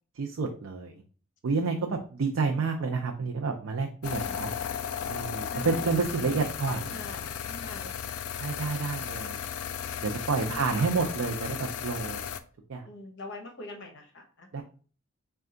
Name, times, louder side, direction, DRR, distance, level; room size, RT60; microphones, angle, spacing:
voice 1, 0.2-1.0 1.4-4.5 5.1-6.8 8.4-9.4 10.0-12.3 12.7-12.8 14.5-14.6, right 4 dB, 65° right, 2 dB, 0.4 m, -29 dB
sound 1, 4.0-12.4, left 8 dB, 80° left, 0.4 m, -35 dB
voice 2, 4.1-4.5 5.5-8.0 10.5-11.0 12.9-14.5, left 2 dB, 50° left, 3 dB, 0.8 m, -43 dB
4.4 x 2.3 x 3.7 m, 0.41 s
head